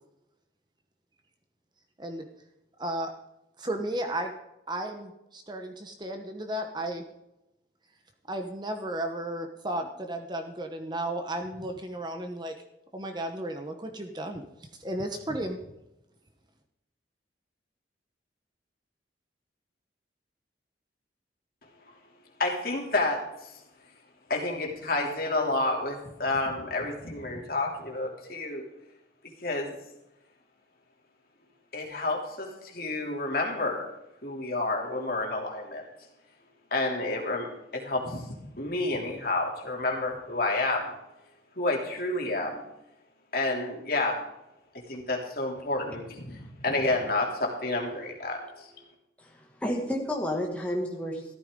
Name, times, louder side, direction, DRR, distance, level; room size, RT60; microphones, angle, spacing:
voice 1, 2.8-3.1 3.6-4.3 4.7-7.0 8.3-12.5 12.9-14.4 14.8-15.6, right 1 dB, 25° right, 4 dB, 1.1 m, -34 dB
voice 2, 22.4-23.5 24.3-28.6 29.4-29.7 31.7-33.9 34.2-35.8 36.7-40.9 41.6-42.6 43.3-44.2 44.9-48.7, left 2 dB, 50° left, 0 dB, 3.0 m, -30 dB
voice 3, 49.2-51.3, equal, 5° left, -1 dB, 2.1 m, -31 dB
14.5 x 13.0 x 3.8 m, 0.89 s
head